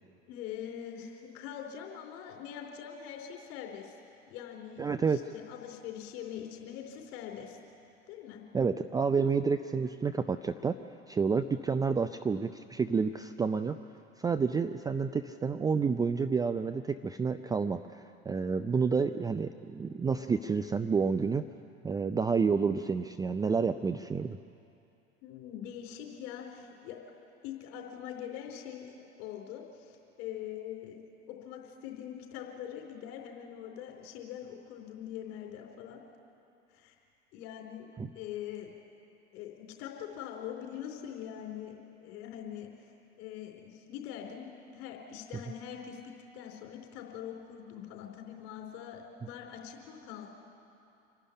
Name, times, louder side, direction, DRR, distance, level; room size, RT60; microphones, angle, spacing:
voice 1, 0.3-4.0 4.3-7.6 8.1-8.4 25.2-27.0 27.4-31.0 31.3-36.0 36.7-36.9 37.3-38.7 39.3-42.7 43.2-50.3, left 9 dB, 50° left, 1 dB, 4.1 m, -43 dB
voice 2, 4.8-5.2 8.5-10.8 11.1-13.8 14.2-21.4 21.8-24.4 38.0-38.1, right 5 dB, 10° right, 8 dB, 0.4 m, -29 dB
26.5 x 11.5 x 10.0 m, 2.7 s
figure-of-eight pair, 80°, 35 cm